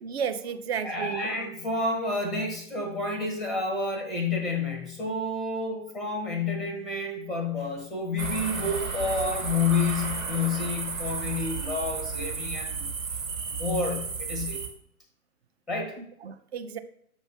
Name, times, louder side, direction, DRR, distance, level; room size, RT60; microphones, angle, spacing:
voice 1, 0.0-1.2 16.0-16.8, right 7 dB, 45° right, 9 dB, 0.6 m, -33 dB
voice 2, 0.8-12.9 13.5-14.6 15.7-15.9, left 3 dB, ahead, 3 dB, 0.6 m, -29 dB
sound 1, 8.2-14.7, right 5 dB, 65° right, 1.4 m, -33 dB
7.1 x 2.6 x 5.7 m, 0.67 s
figure-of-eight pair, 120°, 43 cm